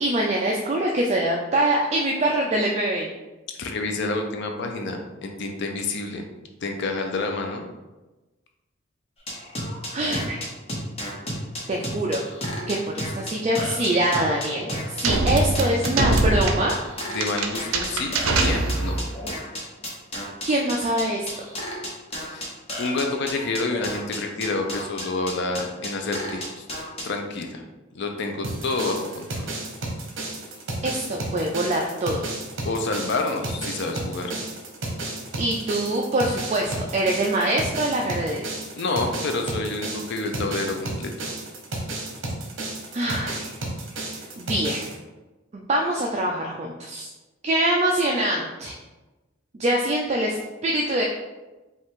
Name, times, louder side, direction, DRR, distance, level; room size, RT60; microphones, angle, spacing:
voice 1, 0.0-3.1 9.9-10.4 11.7-12.2 12.7-16.8 20.4-21.3 30.8-32.2 35.4-38.4 42.9-43.5 44.4-44.9 45.5-47.1 47.4-48.7 49.6-51.0, right 1 dB, 35° right, -1 dB, 0.4 m, -24 dB
voice 2, 3.6-6.2 6.6-7.7 17.1-19.0 22.3-22.5 22.8-26.6 27.0-27.6 27.9-29.5 32.6-34.3 38.7-41.3, left 3 dB, 60° left, 4 dB, 0.5 m, -28 dB
sound 1, 9.3-27.0, equal, 30° left, 1.1 m, -32 dB
sound 2, 15.0-19.1, right 2 dB, 85° right, 0.5 m, -23 dB
sound 3, 28.4-44.9, right 2 dB, 65° right, 1.0 m, -32 dB
5.2 x 2.4 x 3.6 m, 1.1 s
head